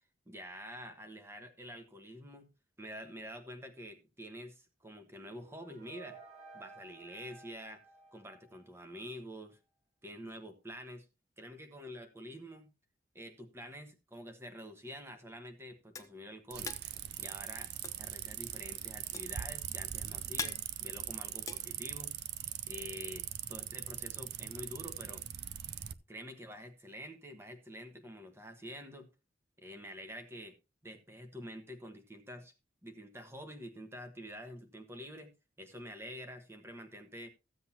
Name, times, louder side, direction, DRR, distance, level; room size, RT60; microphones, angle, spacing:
voice 1, 0.3-2.5 2.8-6.2 6.5-7.8 8.1-9.6 10.0-11.1 11.4-12.7 13.1-16.8 17.2-17.7 18.0-22.1 22.7-25.2 26.1-29.1 29.6-30.5 30.8-32.5 32.8-35.3 35.6-37.3, equal, 15° right, 6 dB, 1.3 m, -47 dB
sound 1, 5.1-9.0, right 4 dB, 35° right, 1.7 m, -55 dB
sound 2, 15.3-22.5, left 4 dB, 15° left, 0.8 m, -45 dB
sound 3, 16.5-25.9, right 11 dB, 55° right, 0.5 m, -41 dB
15.0 x 7.9 x 2.8 m, 0.28 s
head